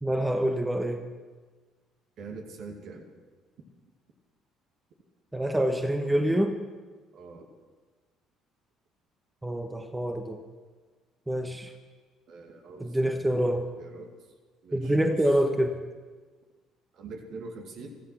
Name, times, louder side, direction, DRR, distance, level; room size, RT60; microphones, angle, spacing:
voice 1, 0.0-1.0 5.3-6.5 9.4-10.4 11.3-11.7 12.8-13.7 14.7-15.8, right 1 dB, 10° right, 6 dB, 1.4 m, -26 dB
voice 2, 2.2-3.0 7.1-7.5 12.3-13.5 13.8-14.1 14.6-15.2 16.9-17.9, right 3 dB, 60° right, 3 dB, 2.4 m, -43 dB
15.0 x 13.5 x 5.9 m, 1.4 s
hypercardioid pair, 55°, 0 cm